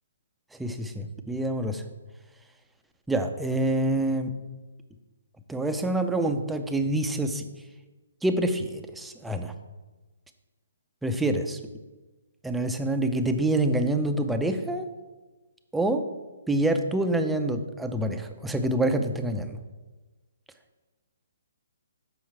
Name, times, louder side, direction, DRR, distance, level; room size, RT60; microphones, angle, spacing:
voice 1, 0.5-1.8 3.1-4.3 5.5-7.5 8.2-9.5 11.0-11.6 12.4-14.9 15.7-16.1 16.5-19.6, right 1 dB, 5° right, 7 dB, 0.5 m, -26 dB
7.3 x 5.6 x 4.4 m, 1.2 s
hypercardioid pair, 140°, 0 cm